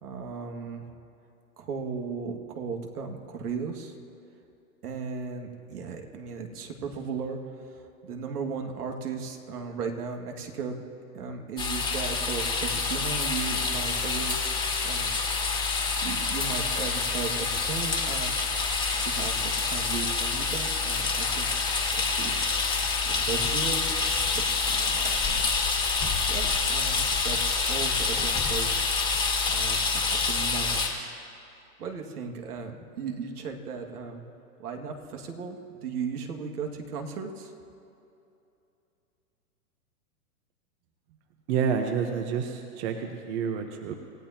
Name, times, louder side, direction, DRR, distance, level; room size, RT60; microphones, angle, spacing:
voice 1, 0.0-0.9 1.6-4.0 4.8-10.8 11.1-14.4 14.8-15.1 16.0-18.3 18.9-22.5 23.0-24.4 24.7-25.5 26.3-28.8 29.5-29.8 30.1-31.1 31.8-34.2 34.6-37.5, right 5 dB, 80° right, 2 dB, 2.4 m, -36 dB
sound 1, 11.6-30.9, left 4 dB, 10° left, 1.8 m, -27 dB
voice 2, 41.5-43.9, right 6 dB, 45° right, 4 dB, 1.3 m, -29 dB
27.5 x 15.5 x 3.0 m, 2.7 s
hypercardioid pair, 135°, 45 cm